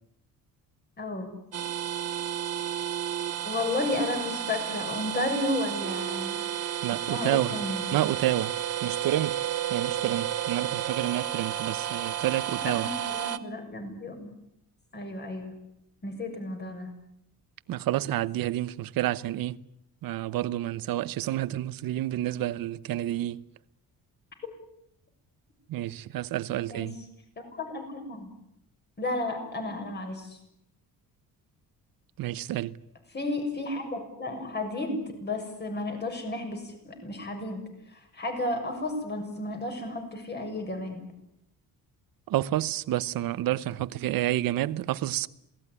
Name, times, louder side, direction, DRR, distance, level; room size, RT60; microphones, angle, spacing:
voice 1, 1.0-1.3 3.4-6.4 7.1-7.9 10.0-10.1 12.6-14.3 14.9-15.5 16.0-16.9 26.7-26.9 27.4-28.3 29.0-30.4 33.1-37.6 37.9-41.1, left 2 dB, 30° left, 6.7 m, -33 dB
sound 1, 1.5-13.4, right 10 dB, 45° right, 1.3 m, -32 dB
voice 2, 6.8-7.6 7.9-8.5 8.8-9.4 9.7-12.9 17.7-19.6 20.0-23.4 25.7-27.0 32.2-32.8 42.3-45.3, right 14 dB, 75° right, 1.0 m, -29 dB
27.5 x 19.0 x 9.9 m
cardioid pair, 145°, 35 cm